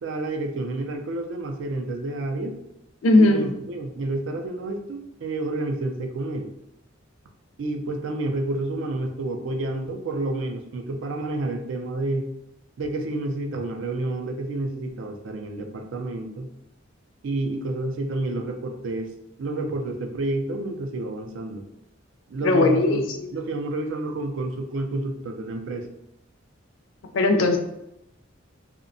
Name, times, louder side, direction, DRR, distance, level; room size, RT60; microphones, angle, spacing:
voice 1, 0.0-2.6 3.1-6.5 7.6-12.3 12.8-16.5 17.2-19.1 19.4-21.7 22.3-25.9, right 2 dB, 70° right, 4 dB, 0.4 m, -29 dB
voice 2, 3.0-3.4 22.4-23.0 27.1-27.6, left 2 dB, 75° left, 5 dB, 0.4 m, -18 dB
2.6 x 2.1 x 2.5 m, 0.84 s
head